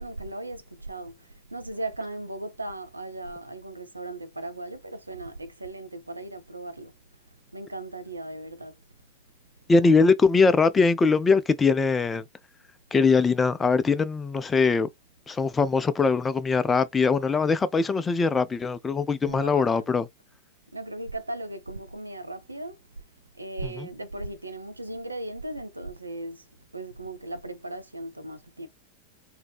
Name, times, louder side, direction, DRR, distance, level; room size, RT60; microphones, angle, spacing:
voice 1, 0.0-6.9 7.5-8.8 19.3-19.9 20.7-22.8 23.4-26.5 26.7-28.7, right 2 dB, 85° right, 0.4 m, -37 dB
voice 2, 9.7-12.2 12.9-14.9 15.3-20.1 23.6-23.9, left 4 dB, 15° left, 0.3 m, -22 dB
2.6 x 2.1 x 2.3 m
figure-of-eight pair, 90°, 0 cm